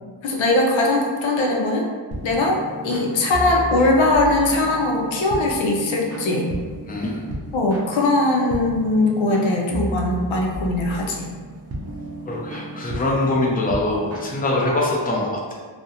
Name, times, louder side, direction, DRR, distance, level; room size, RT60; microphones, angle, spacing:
voice 1, 0.2-1.9 2.2-6.5 7.5-11.3, left 2 dB, 85° left, 0 dB, 0.5 m, -20 dB
sound 1, 2.1-14.9, right 1 dB, 35° right, 0.5 m, -34 dB
voice 2, 6.9-7.3 12.2-15.5, left 2 dB, 20° left, -3 dB, 0.5 m, -23 dB
2.4 x 2.1 x 2.7 m, 1.5 s
cardioid pair, 65°, 45 cm